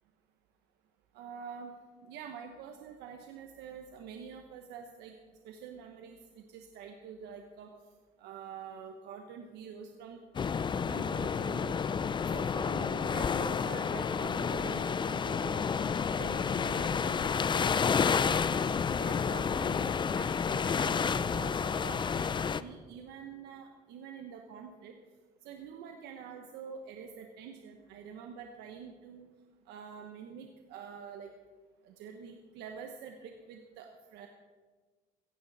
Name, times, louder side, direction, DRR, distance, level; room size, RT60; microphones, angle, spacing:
voice 1, 1.1-1.7 2.0-5.1 5.4-7.7 8.2-10.2 10.9-11.8 12.3-15.8 16.2-17.8 18.1-18.6 18.9-24.9 25.4-29.3 29.7-31.3 31.8-34.3, right 7 dB, 90° right, 4 dB, 1.3 m, -46 dB
sound 1, 10.3-22.6, left 6 dB, 30° left, 0.5 m, -30 dB
16.0 x 15.5 x 4.2 m, 1.4 s
cardioid pair, 110°, 17 cm